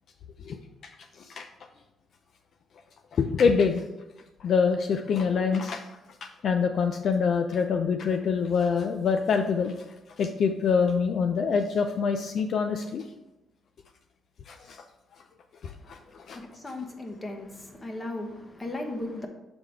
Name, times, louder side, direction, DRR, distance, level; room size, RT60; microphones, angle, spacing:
voice 1, 1.1-1.5 3.1-3.8 4.4-5.8 6.2-9.8 10.2-13.0 14.5-14.8 15.6-16.4, left 5 dB, 60° left, 0.4 m, -25 dB
voice 2, 16.2-19.3, left 2 dB, 25° left, 1.2 m, -36 dB
6.8 x 3.8 x 4.6 m
cardioid pair, 90°, 0 cm